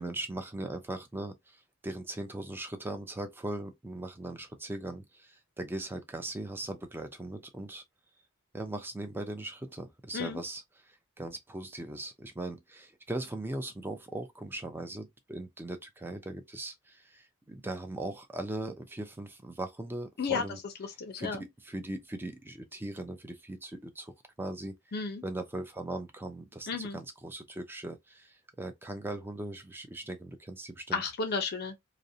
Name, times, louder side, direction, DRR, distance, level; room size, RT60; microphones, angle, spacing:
voice 1, 0.0-7.8 8.5-10.6 10.9-20.6 21.2-24.1 24.4-24.7 25.2-26.7 26.9-31.0, right 1 dB, 10° right, 0.4 m, -39 dB
voice 2, 21.0-21.4 24.9-25.2 26.7-27.0 30.9-31.9, left 5 dB, 45° left, 0.5 m, -33 dB
2.5 x 2.0 x 2.6 m
head